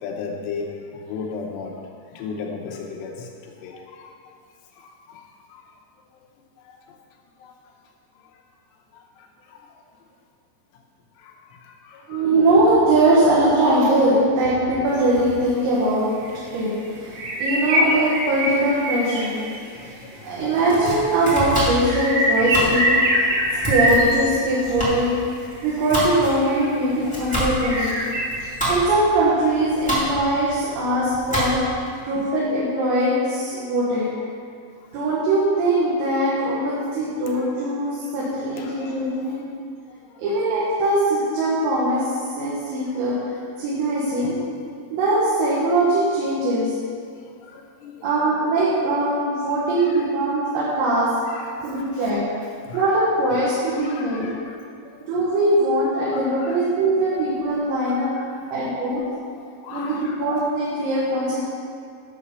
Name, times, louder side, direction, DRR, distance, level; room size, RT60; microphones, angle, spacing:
voice 1, 0.0-4.1 4.8-5.6 6.6-6.8 7.4-7.5 8.2-8.3 8.9-9.7 11.2-12.3 17.2-17.3 19.5-20.5 23.1-23.7 26.9-27.5 27.8-28.3 37.3-37.4 38.6-39.4 39.9-40.2 42.4-42.5 43.1-43.2 44.2-44.3 47.1-48.2 49.8-50.1 51.3-52.2 52.6-52.8 53.8-55.0 56.1-56.6 57.1-57.2 57.9-58.7 59.3-60.5, left 5 dB, 80° left, 0 dB, 3.3 m, -38 dB
voice 2, 12.1-16.1 16.5-19.4 19.8-19.9 20.2-23.2 23.6-25.2 25.6-28.0 28.7-31.6 32.0-34.1 34.9-39.5 40.2-42.1 42.4-43.2 43.6-44.4 44.9-46.7 48.0-51.1 51.6-52.2 52.7-54.3 55.0-58.1 58.5-59.0 59.7-61.4, right 1 dB, 80° right, -8 dB, 4.3 m, -21 dB
sound 1, 14.9-15.0 15.5-15.6 16.2-16.3 16.6-16.8 17.0-19.8 20.7-20.8 21.0-24.6 25.3-26.8 27.3-28.5, equal, 60° right, 3.2 m, -23 dB
Domestic sounds home sounds, 20.5-31.8, equal, 10° left, 0.4 m, -28 dB
11.5 x 7.1 x 5.5 m, 2.2 s
omnidirectional pair, 6.0 m